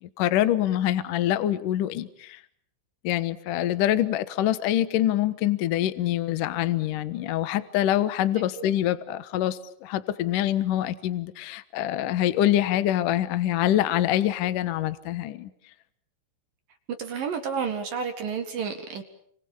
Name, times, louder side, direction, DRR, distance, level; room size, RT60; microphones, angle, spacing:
voice 1, 0.0-2.4 3.0-15.5, left 12 dB, 80° left, 13 dB, 1.9 m, -25 dB
voice 2, 17.0-19.0, right 6 dB, 55° right, 6 dB, 2.8 m, -30 dB
30.0 x 26.0 x 7.2 m, 0.63 s
omnidirectional pair, 5.8 m